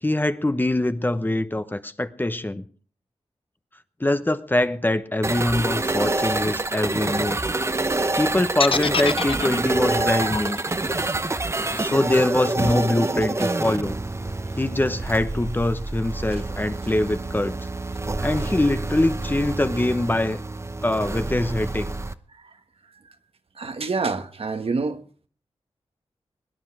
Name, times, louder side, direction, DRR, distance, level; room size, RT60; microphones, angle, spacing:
voice 1, 0.0-2.6 4.0-7.4 8.2-10.6 11.7-14.0 14.6-17.6 18.2-20.4 20.8-21.9, left 1 dB, 15° left, 0.9 m, -23 dB
sound 1, 5.2-22.1, right 2 dB, 25° right, 0.8 m, -27 dB
sound 2, 8.6-12.6, left 5 dB, 55° left, 0.6 m, -28 dB
voice 2, 23.6-25.0, right 4 dB, 60° right, 1.4 m, -26 dB
21.5 x 10.0 x 4.8 m
wide cardioid pair, 90°, 11 cm